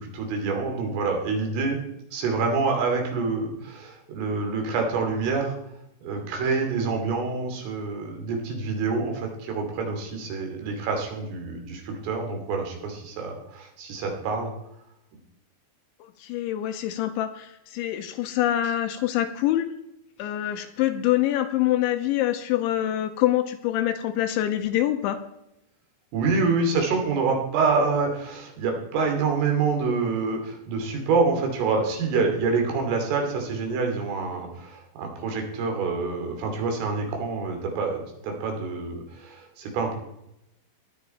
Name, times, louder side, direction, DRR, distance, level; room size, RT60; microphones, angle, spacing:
voice 1, 0.0-1.8 2.1-5.6 6.0-14.5 26.1-39.9, right 4 dB, 75° right, 3 dB, 5.3 m, -27 dB
voice 2, 16.0-19.7 20.2-25.2, left 13 dB, 80° left, 8 dB, 2.9 m, -25 dB
18.5 x 11.5 x 4.3 m, 0.83 s
omnidirectional pair, 5.8 m